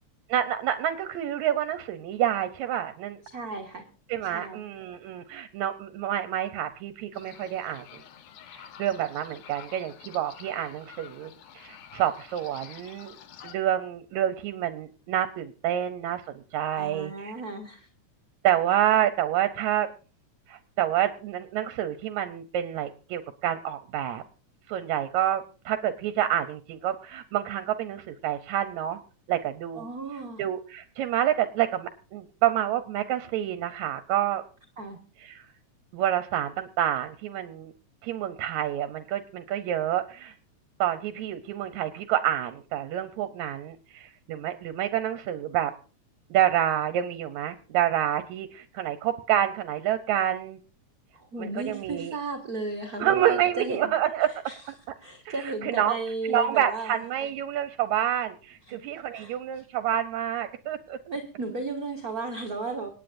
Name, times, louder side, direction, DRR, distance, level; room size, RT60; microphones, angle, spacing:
voice 1, 0.3-3.2 4.1-8.0 8.5-13.1 13.4-17.3 18.4-19.9 20.5-24.2 24.7-29.0 29.3-29.9 30.4-34.4 35.2-35.5 35.9-37.7 38.0-40.3 40.8-45.7 46.3-50.6 51.4-52.2 53.0-54.3 55.3-56.0 56.3-61.0, right 11 dB, 75° right, 11 dB, 2.0 m, -28 dB
voice 2, 3.3-3.8 4.2-4.7 16.8-17.9 29.7-30.4 34.8-35.0 51.1-53.9 54.5-54.6 55.0-57.0 58.7-58.8 59.1-59.6 61.1-62.9, right 3 dB, 40° right, 2 dB, 1.4 m, -34 dB
sound 1, 7.1-13.6, left 9 dB, 90° left, 2.4 m, -49 dB
26.0 x 9.7 x 2.6 m, 0.36 s
omnidirectional pair, 3.4 m